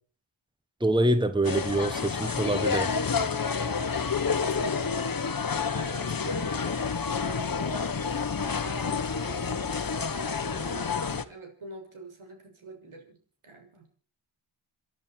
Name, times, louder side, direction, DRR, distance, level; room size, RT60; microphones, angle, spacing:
voice 1, 0.8-2.9, right 1 dB, 10° right, 11 dB, 1.3 m, -25 dB
sound 1, 1.4-11.2, left 5 dB, 45° left, 1.3 m, -29 dB
voice 2, 3.7-4.1 5.8-13.2 13.4-13.9, right 2 dB, 75° right, 4 dB, 6.5 m, -45 dB
28.0 x 11.0 x 4.5 m, 0.42 s
wide cardioid pair, 80°, 49 cm